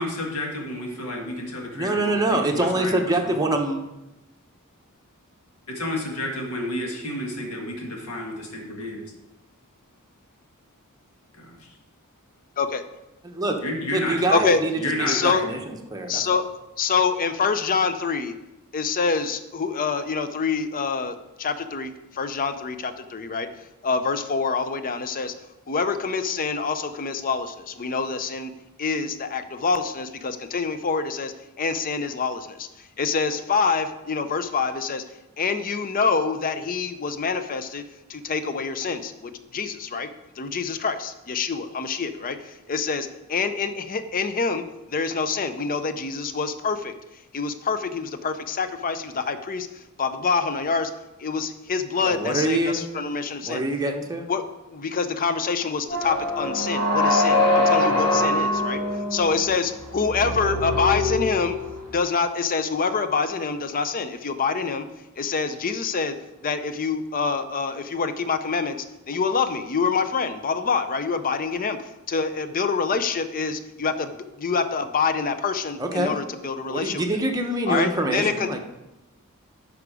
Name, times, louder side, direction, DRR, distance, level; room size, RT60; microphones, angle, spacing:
voice 1, 0.0-3.5 5.7-9.0 11.3-11.7 13.6-15.5, left 1 dB, 85° left, 0 dB, 1.9 m, -31 dB
voice 2, 1.7-3.8 13.2-13.5 13.9-14.7 15.0-16.4 52.0-52.8 53.4-54.3 75.8-76.2 76.7-78.6, right 2 dB, 15° right, 2 dB, 1.0 m, -25 dB
voice 3, 14.3-14.6 15.1-15.5 16.1-16.4 16.8-18.3 18.7-23.5 23.8-25.3 25.7-28.5 28.8-32.7 33.0-35.0 35.4-37.8 38.1-40.1 40.4-42.4 42.7-44.6 44.9-46.9 47.3-49.7 50.0-50.9 51.2-53.6 54.3-54.4 54.7-58.8 59.1-61.6 61.9-64.8 65.2-66.1 66.4-68.8 69.1-71.8 72.1-74.1 74.4-77.0 77.7-78.5, left 5 dB, 40° left, 10 dB, 0.6 m, -26 dB
sound 1, 55.9-61.9, left 2 dB, 20° left, 2.9 m, -23 dB
11.5 x 5.0 x 4.9 m, 0.96 s
head